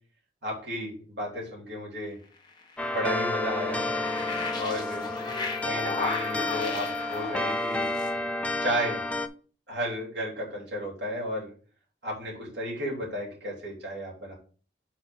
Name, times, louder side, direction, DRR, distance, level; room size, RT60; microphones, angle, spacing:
voice 1, 0.4-2.2 2.9-3.8 4.6-5.1 5.6-7.9 8.6-9.0 9.7-11.5 12.0-14.3, equal, 75° right, -4 dB, 3.0 m, -33 dB
sound 1, 2.4-8.1, left 4 dB, 25° left, 1.1 m, -36 dB
sound 2, 2.8-9.3, left 2 dB, 5° left, 0.4 m, -30 dB
4.5 x 4.4 x 5.7 m, 0.40 s
head